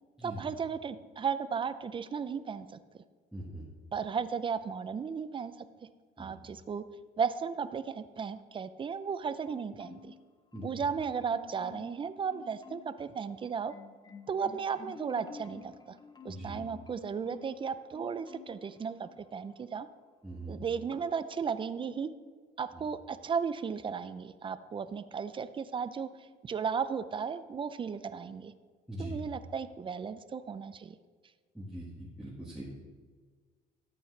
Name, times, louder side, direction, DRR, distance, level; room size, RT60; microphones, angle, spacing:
voice 1, 0.2-2.7 3.9-5.5 6.2-6.8 7.2-10.1 10.6-13.7 14.3-16.0 16.2-19.9 20.5-22.1 22.6-28.5 29.0-31.0, right 6 dB, 30° right, 13 dB, 0.5 m, -35 dB
voice 2, 3.3-3.6 6.2-6.3 10.5-10.7 16.3-16.6 20.2-20.5 28.9-29.2 31.5-32.6, right 1 dB, 5° right, -7 dB, 1.7 m, -41 dB
Marimba xylophone, 9.5-10.2 10.5-12.0 12.3-13.0 13.4-17.6 17.9-18.7 19.0-19.2, left 5 dB, 25° left, 0.8 m, -51 dB
14.0 x 8.5 x 3.3 m, 1.5 s
cardioid pair, 110°, 17 cm